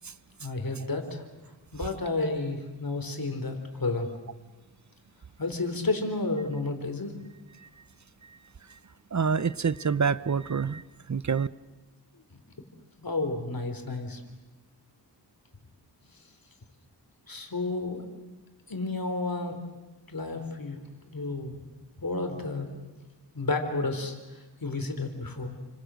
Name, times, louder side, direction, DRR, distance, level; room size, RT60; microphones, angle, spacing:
voice 1, 0.4-1.2 1.7-4.1 5.4-7.1 13.0-14.2 17.3-18.1 18.7-19.6 20.1-20.8 21.1-21.7 22.0-22.7 23.3-24.1 24.6-25.6, left 3 dB, 55° left, 5 dB, 4.1 m, -31 dB
voice 2, 9.1-10.8 11.1-11.5, right 6 dB, 45° right, 17 dB, 0.8 m, -26 dB
29.5 x 26.0 x 6.5 m, 1.2 s
wide cardioid pair, 70°, 41 cm